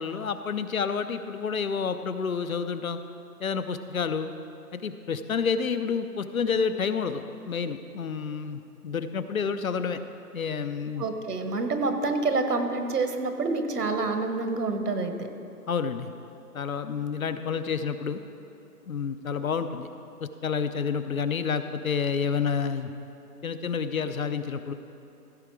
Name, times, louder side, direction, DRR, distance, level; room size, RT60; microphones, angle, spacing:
voice 1, 0.0-3.0 3.4-4.3 4.7-10.0 10.3-11.1 15.7-16.1 16.5-18.2 18.9-19.9 20.2-22.9 23.4-24.7, left 6 dB, 60° left, 10 dB, 0.6 m, -29 dB
voice 2, 11.0-15.3, right 3 dB, 75° right, 6 dB, 1.4 m, -27 dB
15.0 x 6.8 x 4.7 m, 2.8 s
hypercardioid pair, 165°, 47 cm